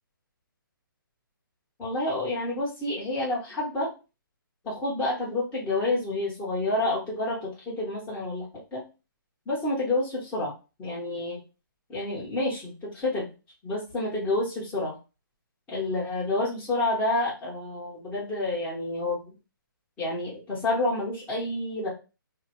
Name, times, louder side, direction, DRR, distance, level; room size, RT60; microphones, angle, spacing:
voice 1, 1.8-3.9 4.6-8.5 8.7-8.8 9.5-10.5 10.8-11.4 11.9-13.3 13.6-14.9 15.7-19.2 20.0-21.9, left 2 dB, 10° left, -7 dB, 1.0 m, -29 dB
2.6 x 2.0 x 3.1 m, 0.30 s
hypercardioid pair, 160°, 12 cm